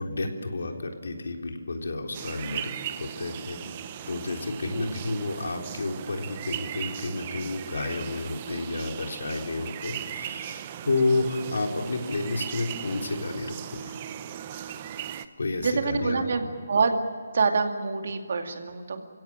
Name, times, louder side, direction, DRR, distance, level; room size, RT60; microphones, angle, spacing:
voice 1, 0.0-3.6 4.0-14.0 15.4-16.2, left 2 dB, 85° left, 2 dB, 3.7 m, -31 dB
sound 1, 2.1-15.3, right 10 dB, 20° right, 0.7 m, -38 dB
voice 2, 15.6-17.0 17.3-19.0, right 4 dB, 50° right, 5 dB, 2.4 m, -26 dB
28.0 x 16.5 x 8.9 m, 2.1 s
hypercardioid pair, 175°, 0 cm